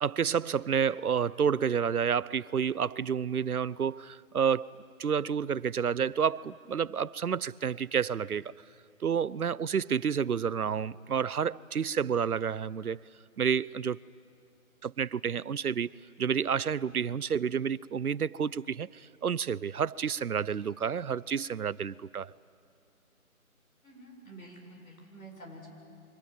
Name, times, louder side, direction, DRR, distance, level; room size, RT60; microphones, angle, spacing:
voice 1, 0.0-4.7 5.0-8.5 9.0-13.0 13.4-14.0 14.8-15.9 16.2-22.3, right 7 dB, 85° right, 0.6 m, -30 dB
voice 2, 23.8-25.7, right 1 dB, 70° left, 7.1 m, -49 dB
29.5 x 24.0 x 7.6 m
figure-of-eight pair, 160°, 43 cm